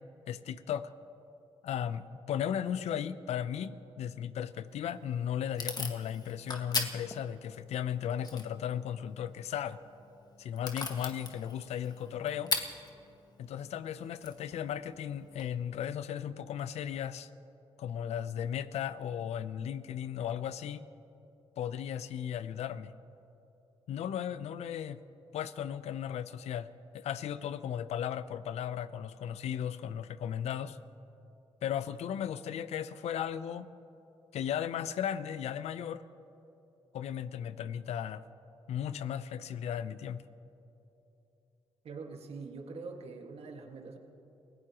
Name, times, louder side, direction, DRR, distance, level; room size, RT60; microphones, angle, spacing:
voice 1, 0.3-0.9 1.6-9.8 10.4-12.5 13.4-17.3 17.8-20.8 21.6-22.9 23.9-25.0 25.3-26.7 26.9-30.8 31.6-33.7 34.3-36.0 36.9-38.2 38.7-40.2, left 9 dB, 80° left, 14 dB, 0.6 m, -36 dB
Packing tape duct tape / Tearing, 4.7-15.5, left 3 dB, 35° left, 1.8 m, -41 dB
voice 2, 41.8-44.0, right 4 dB, 65° right, 2 dB, 1.9 m, -44 dB
28.5 x 17.0 x 3.0 m, 2.9 s
cardioid pair, 65°, 11 cm